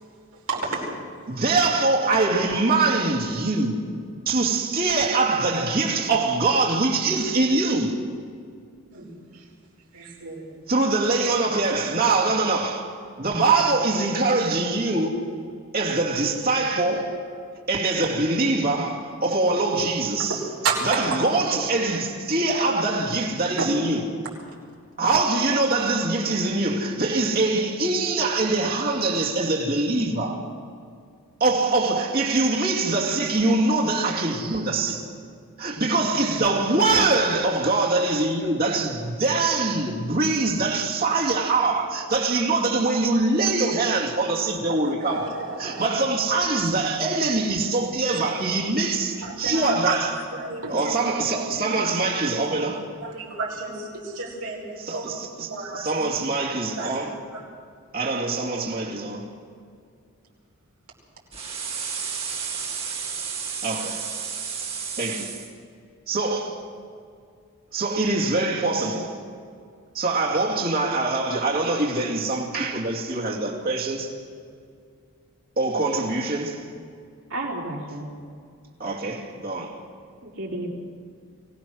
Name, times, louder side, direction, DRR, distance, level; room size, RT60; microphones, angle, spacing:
voice 1, 0.5-0.9 8.9-9.1 9.3-9.5 9.9-10.5 20.3-20.4 20.6-21.2 23.6-23.7 44.7-45.8 46.5-46.6 49.2-51.0 53.0-55.1 55.4-56.0 56.7-57.4, right 3 dB, 90° right, 5.3 m, -31 dB
voice 2, 1.3-3.8 4.3-8.0 10.7-12.8 13.2-15.2 15.7-17.3 17.7-20.4 20.8-24.0 25.0-30.4 31.4-35.0 35.6-45.3 45.6-50.1 50.7-52.8 54.8-57.1 57.9-59.3 63.6-64.1 65.0-65.3 66.1-66.6 67.7-69.2 69.9-74.1 75.6-76.6 78.8-79.8, right 3 dB, 40° right, 2.5 m, -23 dB
sound 1, 61.3-65.5, right 6 dB, 25° right, 2.3 m, -32 dB
voice 3, 77.3-78.1 80.2-80.7, right 1 dB, 60° right, 3.9 m, -31 dB
23.5 x 18.5 x 6.4 m
head